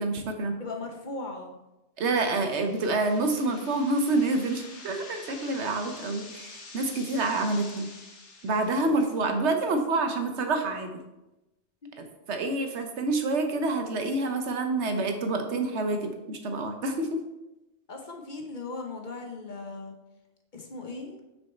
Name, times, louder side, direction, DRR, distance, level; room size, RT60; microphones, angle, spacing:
voice 1, 0.0-0.5 2.0-7.9 8.4-10.9 12.0-17.2, right 2 dB, 80° right, 5 dB, 1.1 m, -27 dB
voice 2, 0.6-1.5 6.0-6.3 11.8-11.9 17.9-19.9 20.5-21.2, left 3 dB, 45° left, 2 dB, 1.0 m, -38 dB
sound 1, 2.3-9.2, left 3 dB, 85° left, 1.3 m, -47 dB
6.3 x 4.7 x 4.3 m, 0.96 s
omnidirectional pair, 1.2 m